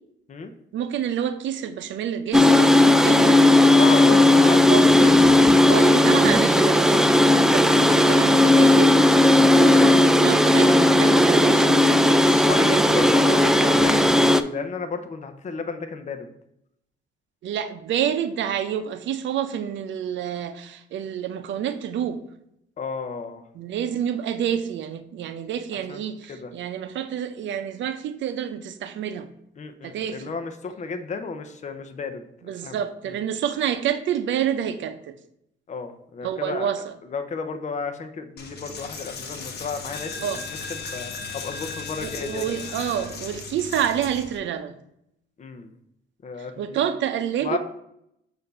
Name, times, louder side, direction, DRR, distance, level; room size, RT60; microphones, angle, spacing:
voice 1, 0.7-3.5 4.2-4.4 4.7-7.1 7.4-9.0 9.6-12.5 17.4-22.2 23.5-29.3 29.8-30.3 32.4-35.1 36.2-36.9 40.2-40.4 42.0-44.8 46.6-47.6, right 9 dB, 70° right, 9 dB, 0.6 m, -28 dB
sound 1, 2.3-14.4, left 1 dB, 5° right, 0.3 m, -16 dB
voice 2, 3.8-4.6 9.3-9.5 11.1-11.3 12.4-14.1 14.5-16.3 22.8-23.4 25.9-26.5 29.6-32.2 32.6-32.8 33.0-33.1 35.7-36.7 37.1-40.4 40.7-42.4 45.4-45.7 46.2-46.9 47.4-47.6, left 5 dB, 35° left, 7 dB, 0.7 m, -32 dB
Coin (dropping), 38.4-44.4, left 4 dB, 55° left, 1.1 m, -36 dB
6.6 x 2.7 x 5.4 m, 0.76 s
cardioid pair, 90°, 20 cm